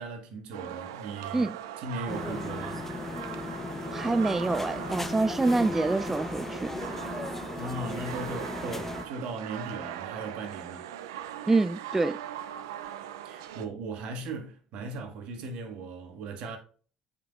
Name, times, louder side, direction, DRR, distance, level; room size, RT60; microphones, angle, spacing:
voice 1, 0.0-2.9 7.6-10.9 13.2-16.6, right 3 dB, 65° right, 1.8 m, -38 dB
sound 1, 0.5-13.7, right 10 dB, 80° right, 0.5 m, -40 dB
sound 2, 2.1-9.0, left 2 dB, 15° left, 0.7 m, -36 dB
voice 2, 3.9-6.7 11.5-12.2, right 3 dB, 15° right, 0.3 m, -26 dB
7.2 x 5.9 x 2.4 m
hypercardioid pair, 65°, 2 cm